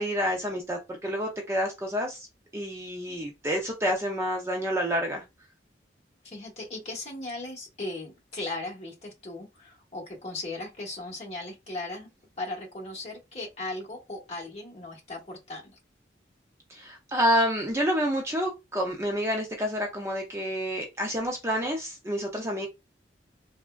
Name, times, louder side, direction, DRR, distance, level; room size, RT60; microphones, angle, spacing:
voice 1, 0.0-2.3 2.5-5.2 16.7-22.7, equal, 15° right, 0.4 m, -28 dB
voice 2, 6.2-12.1 12.4-15.8, left 2 dB, 35° left, 1.1 m, -37 dB
3.4 x 2.1 x 2.3 m
head